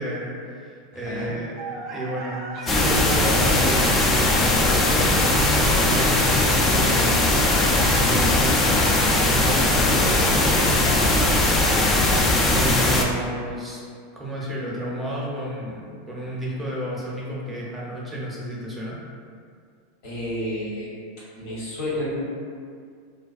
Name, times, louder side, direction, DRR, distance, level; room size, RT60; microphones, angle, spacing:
voice 1, 0.0-1.6 1.9-8.8 9.2-11.3 12.1-13.9 14.1-19.0, equal, 10° right, -5 dB, 0.6 m, -31 dB
voice 2, 0.9-1.4 20.0-20.9 21.3-22.2, left 1 dB, 55° left, -7 dB, 1.0 m, -30 dB
sound 1, 1.6-12.3, right 2 dB, 45° right, 0.4 m, -35 dB
sound 2, 2.7-13.0, left 2 dB, 25° left, 0.3 m, -19 dB
2.4 x 2.2 x 2.4 m, 2.1 s
hypercardioid pair, 100°, 0 cm